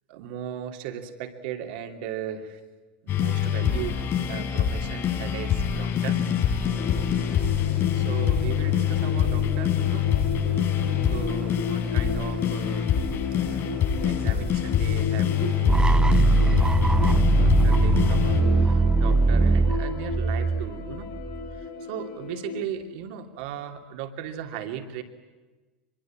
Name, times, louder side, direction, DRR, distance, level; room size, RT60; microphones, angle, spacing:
voice 1, 0.1-2.6 3.0-6.2 7.9-10.1 11.1-13.0 13.4-21.1 21.5-25.0, right 9 dB, 70° right, 6 dB, 2.9 m, -37 dB
sound 1, 3.1-18.4, left 9 dB, 45° left, 8.0 m, -25 dB
sound 2, 6.8-22.6, left 5 dB, 65° left, 2.5 m, -36 dB
sound 3, 15.7-21.6, right 3 dB, 15° right, 0.8 m, -21 dB
24.0 x 23.0 x 8.8 m, 1.3 s
hypercardioid pair, 90°, 5 cm